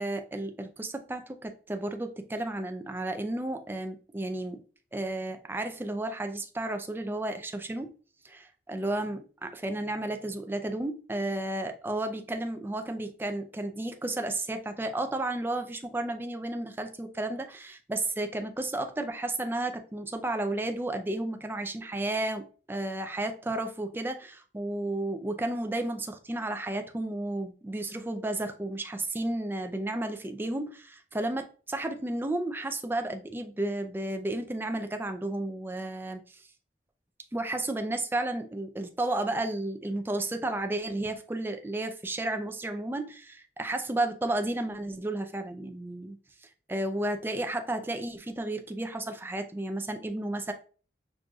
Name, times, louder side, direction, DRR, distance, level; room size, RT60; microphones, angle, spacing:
voice 1, 0.0-4.6 4.9-7.9 8.2-36.5 37.3-50.5, right 2 dB, 10° right, 0.3 m, -33 dB
6.1 x 2.5 x 2.3 m
head